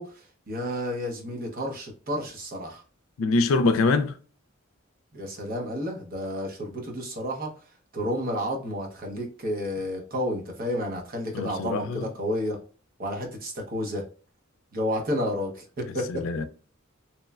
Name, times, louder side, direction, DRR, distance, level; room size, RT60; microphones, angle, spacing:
voice 1, 0.0-2.8 5.1-7.5 7.9-12.6 13.0-14.0 14.7-16.2, equal, 45° right, 0.7 m, -31 dB
voice 2, 3.2-4.2 11.3-12.1 16.1-16.5, left 3 dB, 80° left, 0.4 m, -24 dB
3.0 x 2.1 x 2.3 m
head